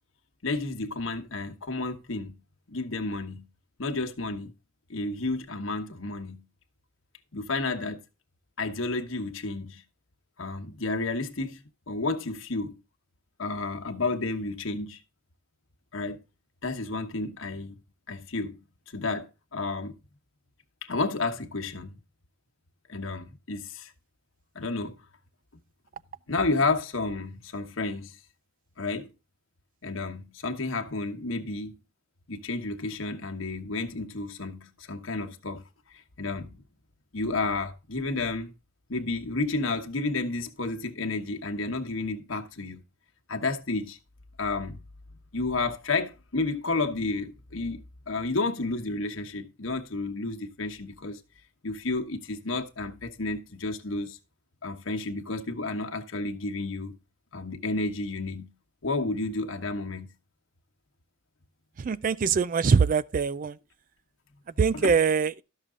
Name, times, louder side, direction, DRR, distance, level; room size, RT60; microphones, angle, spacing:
voice 1, 0.4-2.3 2.7-3.5 3.8-4.5 4.9-6.4 7.3-8.0 8.6-9.8 10.4-12.7 13.4-15.0 15.9-16.2 16.6-17.8 18.1-18.6 18.9-20.0 20.8-22.0 22.9-23.9 24.5-25.0 26.3-28.2 28.8-29.1 29.8-31.8 32.3-35.6 36.2-36.6 37.1-38.6 38.9-42.8 43.3-44.0 44.4-44.8 45.3-51.2 51.6-54.2 54.6-57.0 57.3-58.5 58.8-60.1 64.7-65.0, left 3 dB, 80° left, 1.2 m, -31 dB
voice 2, 61.8-63.5 64.6-65.3, right 5 dB, 40° right, 0.4 m, -23 dB
12.5 x 6.7 x 3.7 m
head